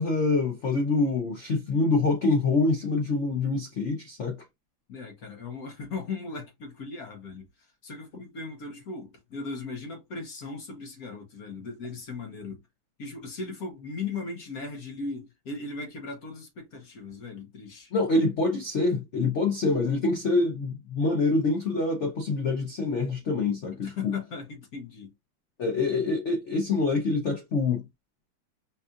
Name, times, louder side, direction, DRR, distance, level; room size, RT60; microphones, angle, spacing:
voice 1, 0.0-4.4 17.9-24.1 25.6-27.8, left 3 dB, 80° left, 0.6 m, -25 dB
voice 2, 4.9-12.6 13.0-17.9 23.8-25.1, left 4 dB, 50° left, 1.2 m, -38 dB
5.3 x 2.5 x 2.4 m
omnidirectional pair, 2.3 m